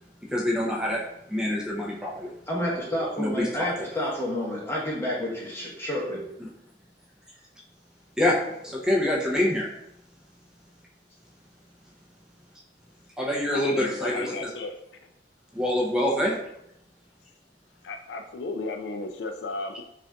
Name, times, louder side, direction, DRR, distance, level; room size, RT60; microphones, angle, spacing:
voice 1, 0.3-1.0 1.3-2.3 3.2-3.7 8.2-8.4 8.6-9.7 13.2-14.5 15.5-16.4, left 1 dB, 5° right, -3 dB, 0.5 m, -25 dB
voice 2, 2.5-6.2, left 1 dB, 15° left, -5 dB, 0.9 m, -29 dB
voice 3, 13.5-14.8 15.0-15.1 17.8-19.8, left 3 dB, 80° left, 5 dB, 0.4 m, -35 dB
5.1 x 2.4 x 2.3 m, 0.79 s
head